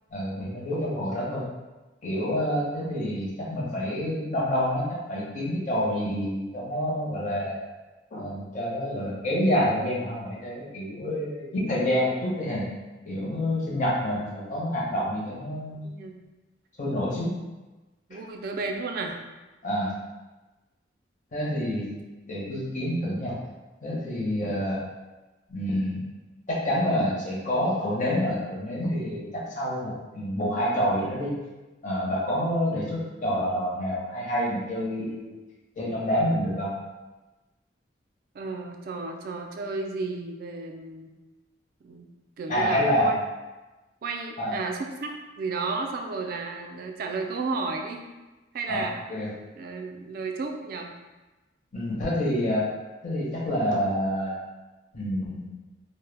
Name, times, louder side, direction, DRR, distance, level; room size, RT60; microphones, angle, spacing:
voice 1, 0.1-1.5 2.0-7.6 8.1-12.7 13.0-15.8 16.8-17.4 18.1-18.2 19.6-19.9 21.3-21.9 22.3-23.4 23.8-24.8 25.5-26.1 26.5-31.3 31.8-35.4 35.8-36.7 42.5-43.1 44.4-44.6 48.7-49.3 51.7-52.7 53.0-54.4 54.9-55.5, equal, 45° left, -5 dB, 0.6 m, -27 dB
voice 2, 15.8-16.2 18.1-19.2 38.3-41.1 41.8-42.1 42.4-43.1 44.0-48.0 48.5-49.0 49.6-50.9, right 3 dB, 55° right, 3 dB, 0.3 m, -33 dB
2.1 x 2.0 x 3.2 m, 1.1 s
head